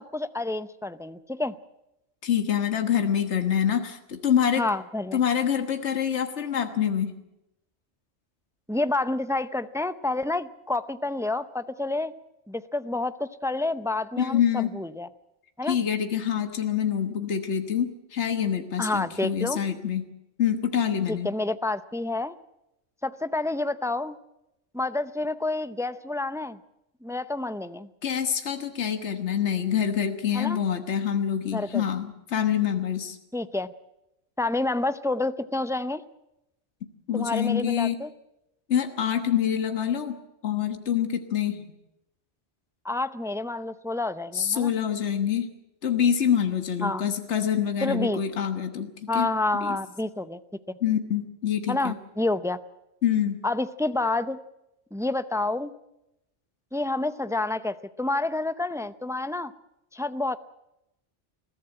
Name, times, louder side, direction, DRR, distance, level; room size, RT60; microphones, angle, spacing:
voice 1, 0.0-1.5 4.6-5.2 8.7-12.1 12.5-15.1 15.6-15.8 18.8-19.6 21.1-22.4 23.0-24.2 24.7-26.6 27.0-27.9 30.3-30.6 31.5-31.8 33.3-33.7 34.4-36.0 37.1-38.1 42.8-44.7 46.8-47.0 47.8-48.2 49.1-50.4 50.7-50.8 51.7-52.6 53.4-54.4 54.9-55.7 56.7-59.5 59.9-60.4, left 2 dB, 5° right, 13 dB, 0.3 m, -29 dB
voice 2, 2.2-4.6 5.1-7.2 14.2-14.7 15.6-20.0 20.4-21.3 28.0-33.2 37.1-38.0 38.7-40.2 40.4-41.7 44.3-45.5 45.8-49.3 49.5-49.8 50.8-52.0 53.0-53.4, left 9 dB, 70° left, 7 dB, 1.7 m, -26 dB
21.5 x 15.5 x 8.8 m, 0.88 s
omnidirectional pair, 1.2 m